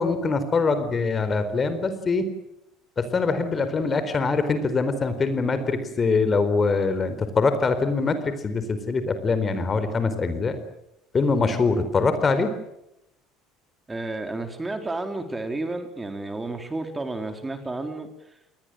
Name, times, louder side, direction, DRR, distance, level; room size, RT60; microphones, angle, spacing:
voice 1, 0.0-2.2 3.0-8.2 8.4-10.6 11.1-12.5, left 4 dB, 30° left, 10 dB, 4.2 m, -23 dB
voice 2, 13.9-18.1, right 2 dB, 15° right, 7 dB, 4.0 m, -31 dB
29.5 x 20.5 x 7.9 m, 0.83 s
hypercardioid pair, 65°, 0 cm